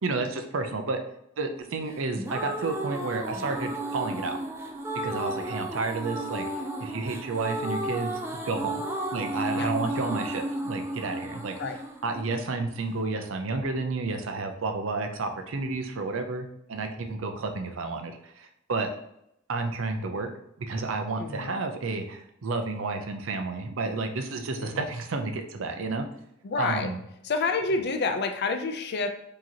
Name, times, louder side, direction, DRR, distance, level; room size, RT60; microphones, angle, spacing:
voice 1, 0.0-1.0 1.4-4.4 5.0-8.7 9.1-11.5 12.0-18.9 19.5-20.3 20.6-26.0 26.6-27.0, right 3 dB, 70° right, 5 dB, 0.5 m, -31 dB
sound 1, 1.9-13.0, right 1 dB, 15° right, 0.5 m, -33 dB
voice 2, 21.2-21.5 24.6-24.8 26.4-26.9 27.2-29.1, left 3 dB, 55° left, 6 dB, 0.5 m, -28 dB
4.8 x 2.9 x 2.8 m, 0.77 s
head